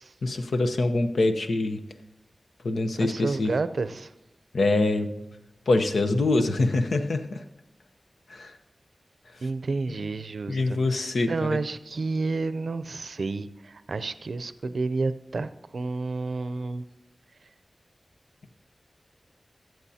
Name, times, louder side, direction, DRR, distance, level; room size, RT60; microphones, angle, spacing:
voice 1, 0.2-1.8 2.6-3.6 4.5-5.1 5.7-7.4 8.3-8.5 9.9-10.0 10.5-11.6, left 2 dB, 90° left, 7 dB, 0.8 m, -24 dB
voice 2, 3.0-4.1 9.4-16.8, right 3 dB, 75° right, 13 dB, 0.5 m, -30 dB
20.5 x 7.7 x 2.8 m, 0.96 s
cardioid pair, 45°, 0 cm